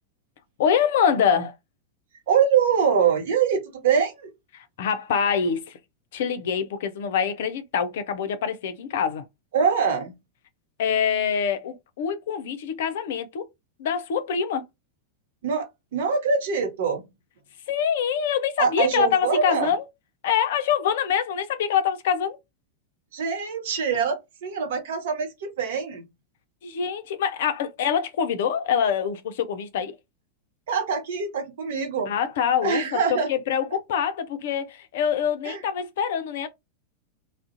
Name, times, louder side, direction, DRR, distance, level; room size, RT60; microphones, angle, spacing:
voice 1, 0.6-1.5 4.5-5.8 6.1-9.2 10.8-13.4 13.8-14.6 17.7-19.9 20.2-22.4 26.6-30.0 32.1-36.5, left 7 dB, 55° left, 0.4 m, -25 dB
voice 2, 2.3-4.3 9.5-10.1 15.4-15.7 15.9-17.0 18.6-19.7 23.1-26.0 30.7-32.1 32.6-33.3 35.4-35.6, right 6 dB, 55° right, 0.7 m, -24 dB
2.4 x 2.1 x 2.5 m
figure-of-eight pair, 90°, 0 cm